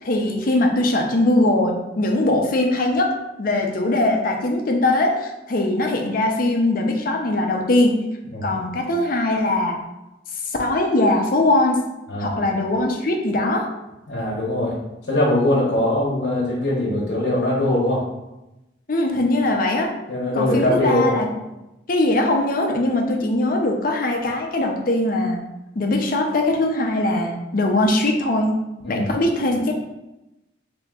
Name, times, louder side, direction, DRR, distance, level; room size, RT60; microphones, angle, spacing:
voice 1, 0.0-3.1 3.4-7.9 8.4-9.8 10.6-11.8 12.2-13.7 18.9-19.9 20.3-21.3 21.9-25.4 25.8-28.5 28.9-29.7, left 2 dB, 50° left, 2 dB, 0.6 m, -21 dB
voice 2, 12.1-12.4 14.1-14.8 15.1-18.0 20.1-21.2 28.8-29.1, left 1 dB, 75° left, -5 dB, 1.0 m, -21 dB
3.4 x 2.9 x 3.6 m, 0.95 s
head